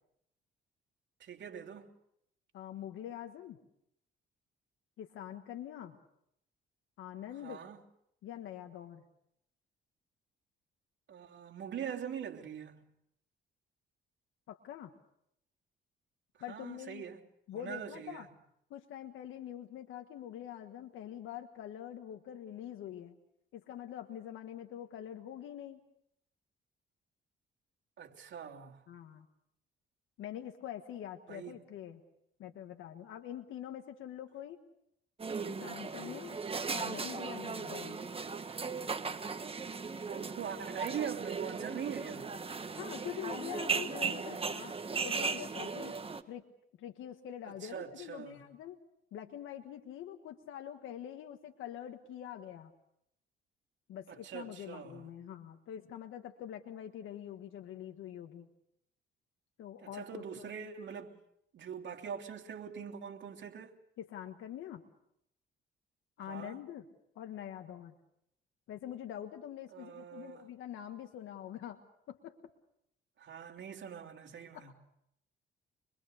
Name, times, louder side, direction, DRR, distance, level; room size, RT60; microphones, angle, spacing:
voice 1, 1.2-1.9 7.4-7.8 11.1-12.9 16.5-17.2 17.5-18.3 28.0-28.8 31.3-31.5 40.1-42.3 47.4-48.4 54.1-55.0 59.8-61.1 61.5-63.7 66.2-66.6 69.7-70.5 73.2-74.7, right 8 dB, 65° right, 3.0 m, -43 dB
voice 2, 2.5-3.6 5.0-6.0 7.0-7.6 8.2-9.0 14.5-14.9 16.4-17.0 17.5-18.3 18.7-23.1 23.5-25.8 28.9-29.3 30.2-32.0 32.4-34.6 35.4-36.4 36.7-38.0 42.7-44.8 45.0-45.9 46.3-46.4 46.8-48.8 49.1-52.7 53.9-58.5 59.6-60.5 64.0-64.8 66.2-66.9 67.1-67.9 68.7-71.8 72.1-72.4 74.5-74.7, left 10 dB, 80° left, 1.5 m, -45 dB
sound 1, 35.2-46.2, right 5 dB, 30° right, 1.5 m, -37 dB
25.5 x 22.0 x 6.6 m
cardioid pair, 90°, 20 cm